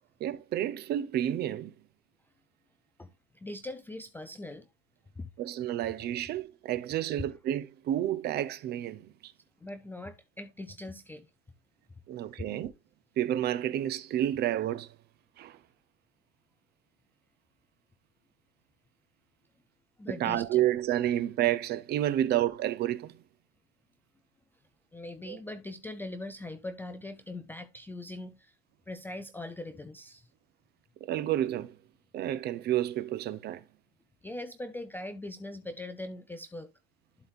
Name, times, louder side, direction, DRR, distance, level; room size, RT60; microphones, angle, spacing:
voice 1, 0.2-1.7 5.4-9.3 12.1-12.7 13.2-14.9 15.4-15.6 20.1-23.1 25.3-25.4 31.0-31.7 32.1-33.6, right 12 dB, 30° right, 0.7 m, -30 dB
voice 2, 3.3-4.7 5.2-5.3 9.6-11.3 20.0-20.5 24.9-28.5 28.9-30.3 34.2-36.7, left 2 dB, 5° left, 0.5 m, -41 dB
11.5 x 4.2 x 3.6 m
supercardioid pair, 155°, 34 cm